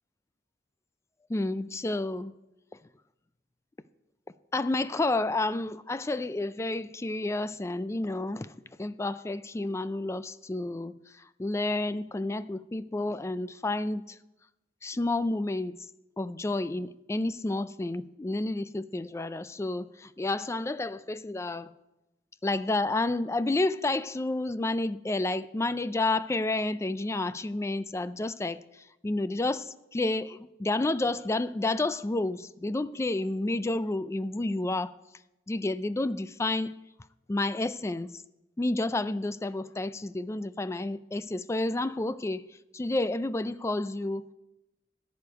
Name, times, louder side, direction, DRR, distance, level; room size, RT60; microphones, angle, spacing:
voice 1, 1.3-2.3 4.5-8.5 8.8-11.0 11.4-14.2 14.8-15.8 16.2-21.7 22.4-28.6 29.0-34.9 35.5-36.7 37.3-38.2 38.6-42.4 42.7-44.3, left 2 dB, 15° left, 0.3 m, -30 dB
14.0 x 5.2 x 9.4 m
head